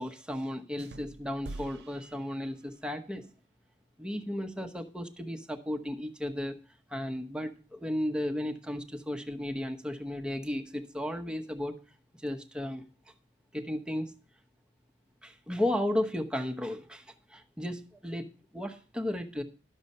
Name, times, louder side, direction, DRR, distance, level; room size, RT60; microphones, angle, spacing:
voice 1, 0.0-3.3 4.0-6.6 6.9-11.8 12.2-12.8 13.5-14.1 15.2-19.4, left 1 dB, 5° right, 5 dB, 1.0 m, -34 dB
sound 1, 0.8-3.0, right 2 dB, 65° right, 0.5 m, -46 dB
12.0 x 6.9 x 5.4 m, 0.37 s
head